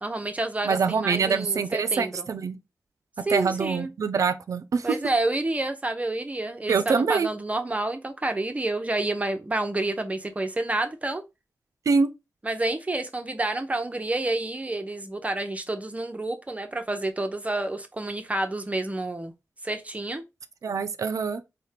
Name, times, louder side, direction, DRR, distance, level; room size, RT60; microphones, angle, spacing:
voice 1, 0.0-2.3 3.2-3.9 4.8-11.2 12.4-19.3 19.6-20.2, right 2 dB, 25° right, 0.6 m, -29 dB
voice 2, 0.6-2.6 3.3-4.9 6.7-7.3 11.9-12.1 20.6-21.4, right 5 dB, 70° right, 0.4 m, -24 dB
4.2 x 2.1 x 3.3 m
wide cardioid pair, 80°, 6 cm